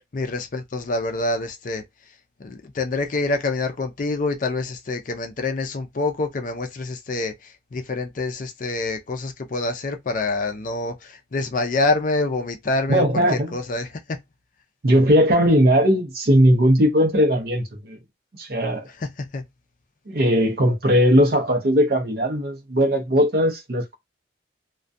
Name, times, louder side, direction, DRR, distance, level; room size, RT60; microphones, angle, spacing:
voice 1, 0.1-1.8 2.4-14.2 19.0-19.4, left 3 dB, 45° left, 0.4 m, -26 dB
voice 2, 12.9-13.6 14.8-18.0 18.4-18.9 20.1-24.0, equal, 50° right, 0.6 m, -18 dB
2.3 x 2.2 x 2.5 m
head